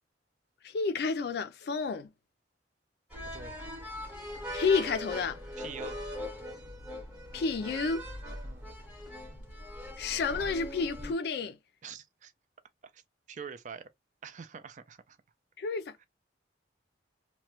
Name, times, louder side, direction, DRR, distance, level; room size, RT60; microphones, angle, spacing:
voice 1, 0.6-2.1 4.5-5.4 7.3-8.1 10.0-11.6 15.6-16.0, left 4 dB, 55° left, 0.4 m, -30 dB
sound 1, 3.1-11.1, equal, 10° right, 0.8 m, -41 dB
voice 2, 3.2-3.6 5.6-6.0 8.4-8.7 11.8-12.3 12.8-13.0 13.3-13.9 14.2-15.2, right 6 dB, 40° right, 0.4 m, -45 dB
2.9 x 2.2 x 2.9 m
head